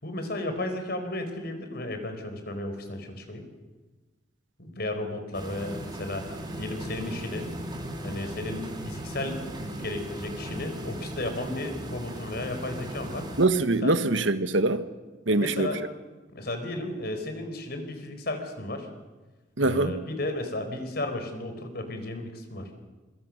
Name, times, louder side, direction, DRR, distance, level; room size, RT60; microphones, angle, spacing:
voice 1, 0.0-3.4 4.6-6.2 6.6-7.5 8.0-13.3 13.8-14.0 15.3-15.8 16.3-18.9 19.6-22.7, left 1 dB, 55° left, 4.5 m, -34 dB
sound 1, 5.3-13.5, right 1 dB, 25° right, 3.1 m, -37 dB
voice 2, 13.4-14.8 15.3-15.7 19.6-20.0, right 2 dB, 90° right, 1.5 m, -23 dB
26.5 x 23.5 x 6.6 m
head